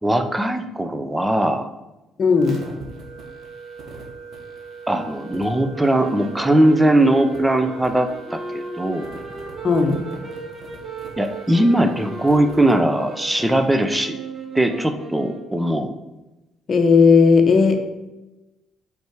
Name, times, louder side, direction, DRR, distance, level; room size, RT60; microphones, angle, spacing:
voice 1, 0.0-1.7 4.9-9.1 11.2-14.2 14.5-15.9, right 1 dB, 10° right, 7 dB, 0.6 m, -20 dB
voice 2, 2.2-2.6 9.6-10.0 16.7-17.8, left 5 dB, 40° left, 5 dB, 1.0 m, -15 dB
sound 1, 2.4-13.7, right 4 dB, 50° right, 1.5 m, -39 dB
sound 2, 5.7-15.7, right 2 dB, 30° right, 1.8 m, -37 dB
5.2 x 4.7 x 4.7 m, 0.99 s
cardioid pair, 95°, 0 cm